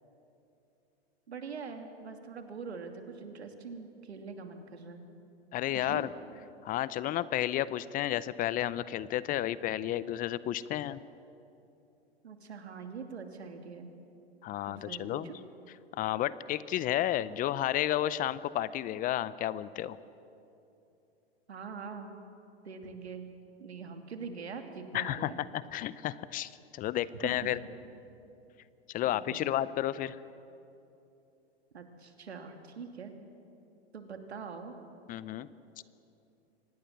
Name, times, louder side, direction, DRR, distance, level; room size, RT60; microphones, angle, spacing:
voice 1, 1.3-5.1 5.7-6.1 12.2-13.9 14.7-15.4 21.5-22.1 22.6-23.2 23.6-25.4 27.2-27.4 29.1-29.5 31.7-33.1 33.9-34.7, right 5 dB, 85° right, 5 dB, 2.7 m, -43 dB
voice 2, 5.5-6.1 6.6-11.0 14.4-15.3 15.9-20.0 24.9-27.6 28.9-30.2 35.1-35.5, left 13 dB, 25° left, 17 dB, 0.6 m, -32 dB
25.5 x 19.5 x 7.3 m, 2.8 s
hypercardioid pair, 110°, 32 cm